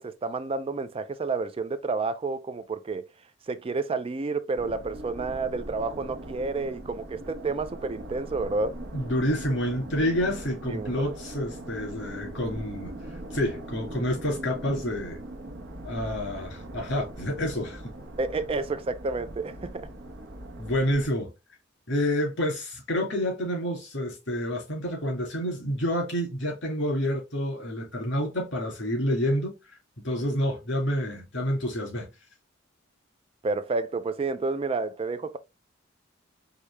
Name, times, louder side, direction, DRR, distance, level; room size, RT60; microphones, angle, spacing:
voice 1, 0.0-3.0 3.5-8.8 10.7-11.1 18.2-19.9 33.4-35.4, right 3 dB, 30° right, 0.4 m, -30 dB
sound 1, 4.5-21.1, right 1 dB, 65° right, 1.0 m, -41 dB
voice 2, 8.9-12.9 13.3-15.2 15.8-17.9 20.6-21.3 21.9-29.5 30.0-32.1, equal, 65° left, 2.4 m, -28 dB
4.8 x 2.7 x 3.3 m
head